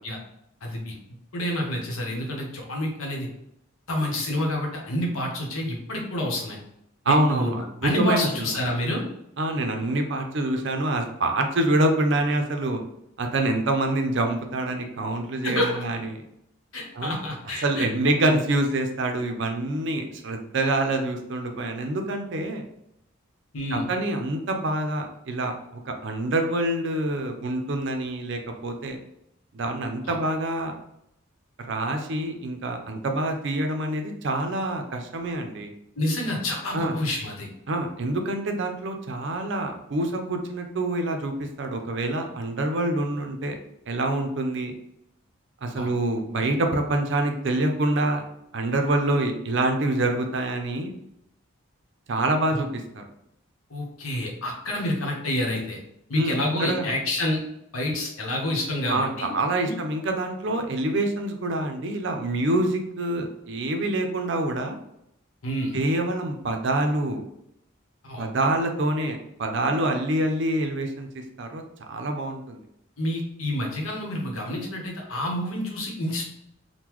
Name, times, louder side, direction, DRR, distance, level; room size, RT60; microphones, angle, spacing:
voice 1, 0.6-0.9 1.3-3.3 3.9-6.6 7.1-7.5 7.8-9.0 15.4-15.8 16.7-17.9 23.5-23.9 30.1-30.2 36.0-37.5 45.8-45.9 52.5-52.6 53.7-55.8 56.1-57.4 57.7-59.3 59.6-59.7 65.4-65.8 68.0-68.3 73.0-76.3, left 1 dB, 85° left, 0 dB, 0.9 m, -28 dB
voice 2, 7.1-8.5 9.4-12.8 13.2-16.2 16.9-17.1 17.6-22.6 23.7-29.0 29.5-30.7 31.7-35.7 36.7-36.9 37.7-43.5 43.9-44.7 45.6-48.2 48.5-50.9 52.1-53.0 56.1-56.9 58.9-64.8 65.7-67.2 68.2-71.6 71.9-72.6, right 1 dB, 55° right, 4 dB, 0.5 m, -26 dB
3.7 x 2.1 x 3.0 m, 0.76 s
head